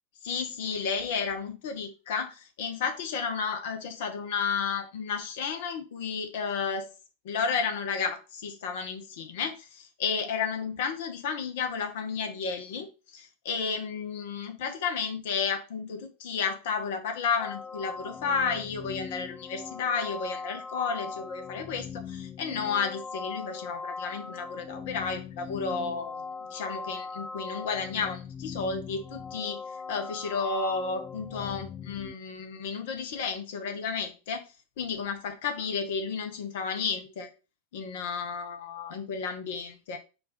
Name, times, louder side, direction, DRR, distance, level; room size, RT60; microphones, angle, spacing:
voice 1, 0.2-6.9 7.2-37.3 37.7-40.0, left 5 dB, 55° left, 0.8 m, -32 dB
sound 1, 17.4-32.1, left 5 dB, 20° left, 0.3 m, -40 dB
4.4 x 2.5 x 4.2 m
figure-of-eight pair, 90°, 0 cm